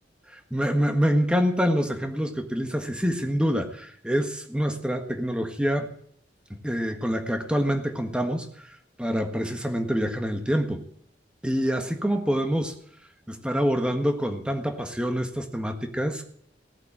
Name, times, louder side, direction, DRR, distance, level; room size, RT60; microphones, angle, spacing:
voice 1, 0.3-5.9 6.5-10.8 11.4-12.7 13.3-16.3, equal, 5° right, 5 dB, 1.6 m, -26 dB
18.0 x 8.1 x 8.7 m, 0.64 s
head